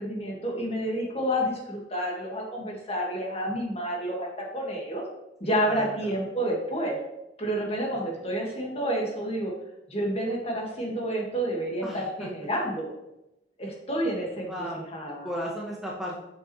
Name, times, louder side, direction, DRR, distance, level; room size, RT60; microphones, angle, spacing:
voice 1, 0.0-5.0 5.4-7.0 7.4-9.5 9.9-12.9 13.6-14.5 14.9-15.3, equal, 35° left, -1 dB, 1.8 m, -29 dB
voice 2, 5.7-6.2 11.8-12.3 13.6-13.7 14.4-14.9 15.2-16.2, equal, ahead, -4 dB, 1.0 m, -35 dB
8.2 x 6.1 x 3.2 m, 0.89 s
head